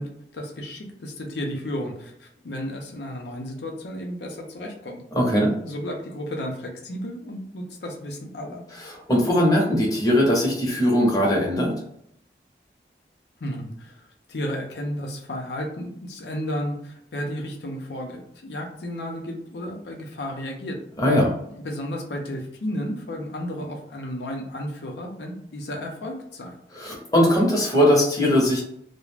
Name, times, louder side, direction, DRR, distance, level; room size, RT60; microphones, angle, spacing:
voice 1, 0.0-5.0 5.6-8.6 13.4-20.8 21.5-26.6, equal, 75° left, 2 dB, 0.5 m, -33 dB
voice 2, 5.1-5.5 8.8-11.8 21.0-21.3 26.7-28.6, equal, 20° left, -3 dB, 0.7 m, -20 dB
2.4 x 2.0 x 3.1 m, 0.71 s
head